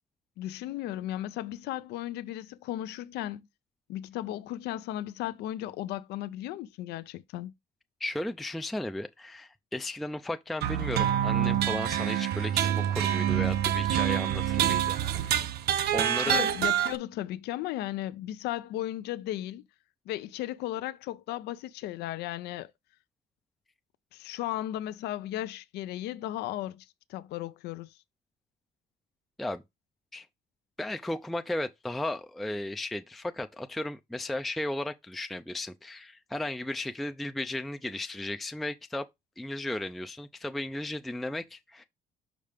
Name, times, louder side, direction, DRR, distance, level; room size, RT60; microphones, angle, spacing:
voice 1, 0.4-3.5 3.9-7.5 16.3-19.6 20.1-22.7 24.1-28.0, left 14 dB, 80° left, 0.5 m, -35 dB
voice 2, 8.0-15.5 15.9-16.5 29.4-29.6 30.1-30.3 30.8-39.1 39.4-41.8, left 1 dB, ahead, 0.4 m, -35 dB
sound 1, 10.6-17.0, right 11 dB, 75° right, 0.7 m, -26 dB
5.5 x 5.1 x 3.4 m
cardioid pair, 110°, 17 cm